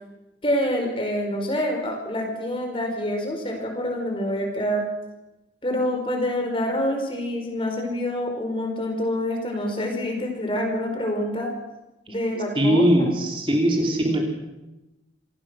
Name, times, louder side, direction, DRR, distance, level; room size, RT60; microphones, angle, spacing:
voice 1, 0.4-4.8 5.6-11.5 12.1-13.1 13.5-13.6, left 1 dB, 30° left, 3 dB, 4.7 m, -26 dB
voice 2, 12.5-14.2, right 1 dB, 30° right, 1 dB, 3.3 m, -20 dB
26.5 x 19.5 x 6.2 m, 1.0 s
head